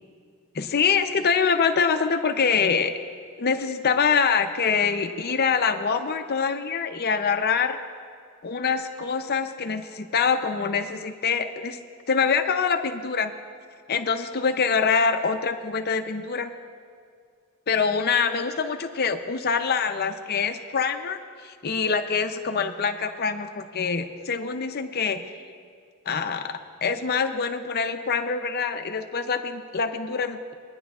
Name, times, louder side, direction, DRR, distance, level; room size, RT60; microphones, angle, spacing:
voice 1, 0.5-2.9 3.4-7.8 8.4-11.8 12.1-13.3 13.9-16.5 17.7-25.3 26.1-30.5, left 5 dB, 45° left, 7 dB, 0.6 m, -25 dB
23.0 x 10.0 x 2.4 m, 2.2 s
head